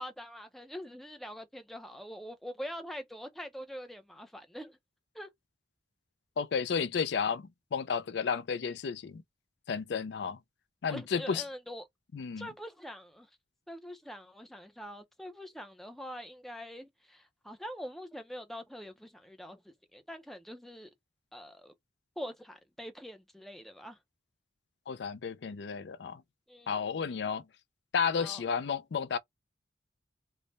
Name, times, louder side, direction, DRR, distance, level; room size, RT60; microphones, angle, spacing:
voice 1, 0.0-4.8 5.1-5.3 10.9-11.8 12.4-13.3 13.7-20.9 21.3-21.7 22.2-24.0 26.5-27.2 28.2-28.4, equal, ahead, 0.5 m, -44 dB
voice 2, 6.4-9.2 9.7-10.4 10.8-11.4 12.1-12.5 24.9-26.2 26.7-27.4 27.9-29.2, left 6 dB, 65° left, 0.4 m, -32 dB
3.2 x 2.1 x 3.9 m
head